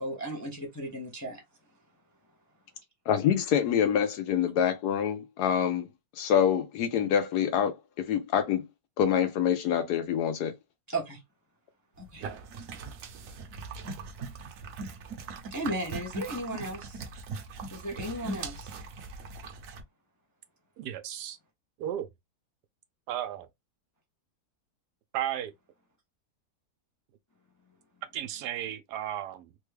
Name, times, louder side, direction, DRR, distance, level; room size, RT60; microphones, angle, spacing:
voice 1, 0.0-1.4 10.9-11.2 12.0-12.3 15.5-17.0 17.7-18.8, right 1 dB, 30° left, 0.3 m, -35 dB
voice 2, 3.1-5.9 6.2-8.7 9.0-10.5, left 8 dB, 80° left, 1.2 m, -26 dB
sound 1, 12.0-19.8, right 3 dB, 65° right, 1.0 m, -40 dB
voice 3, 20.8-21.4 21.8-22.1 23.1-23.5 25.1-25.5 28.1-29.5, right 11 dB, 85° right, 1.2 m, -34 dB
3.4 x 2.2 x 3.2 m
omnidirectional pair, 1.7 m